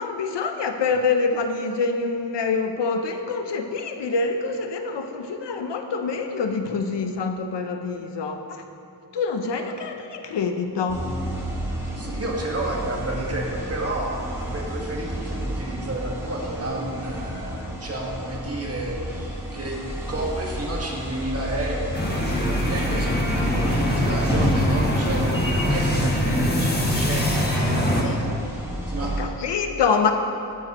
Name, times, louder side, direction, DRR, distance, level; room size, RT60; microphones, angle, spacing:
voice 1, 0.0-8.6 9.1-11.1 28.0-28.4 28.7-30.1, left 4 dB, 75° left, 6 dB, 0.8 m, -26 dB
sound 1, 10.9-29.2, equal, 5° right, 1.6 m, -30 dB
voice 2, 12.0-19.8 20.1-28.2 28.5-28.6 28.9-29.1, right 1 dB, 35° right, -2 dB, 1.7 m, -31 dB
sound 2, 21.9-28.0, left 1 dB, 25° left, 1.2 m, -23 dB
14.0 x 8.6 x 3.0 m, 2.6 s
wide cardioid pair, 110°, 42 cm